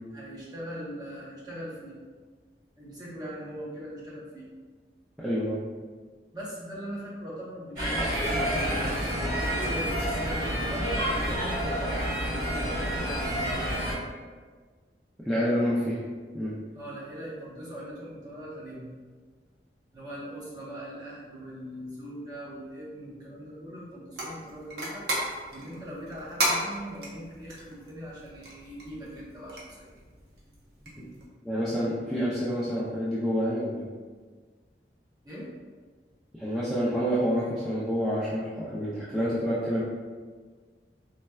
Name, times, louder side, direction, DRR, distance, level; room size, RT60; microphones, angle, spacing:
voice 1, 0.1-2.0 2.8-4.5 6.3-13.8 16.8-18.9 19.9-25.1 25.5-29.9 35.2-35.5, equal, 25° right, -7 dB, 0.8 m, -41 dB
voice 2, 5.2-5.6 15.3-16.0 16.3-16.5 31.0-31.1 31.4-33.8 36.3-39.8, equal, ahead, -11 dB, 0.4 m, -28 dB
sound 1, 7.8-13.9, equal, 45° right, 1.5 m, -28 dB
sound 2, 24.1-31.3, right 1 dB, 65° right, 0.7 m, -35 dB
4.1 x 2.1 x 2.3 m, 1.5 s
head